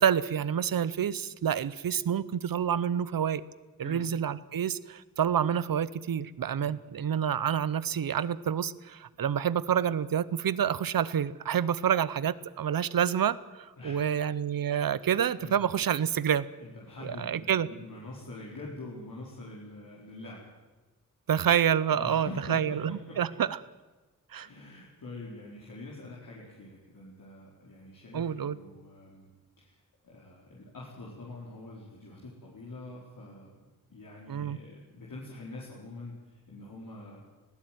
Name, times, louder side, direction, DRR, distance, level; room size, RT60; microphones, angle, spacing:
voice 1, 0.0-3.4 3.8-16.5 17.0-17.7 21.3-23.6 24.3-24.5 28.1-28.6 34.3-34.6, right 8 dB, 85° right, 18 dB, 0.8 m, -28 dB
voice 2, 13.8-14.2 15.0-15.7 16.6-20.4 21.9-23.2 24.4-29.8 30.0-33.5 33.9-37.2, left 2 dB, 75° left, -5 dB, 4.6 m, -45 dB
19.5 x 16.5 x 9.3 m, 1.2 s
cardioid pair, 65°, 34 cm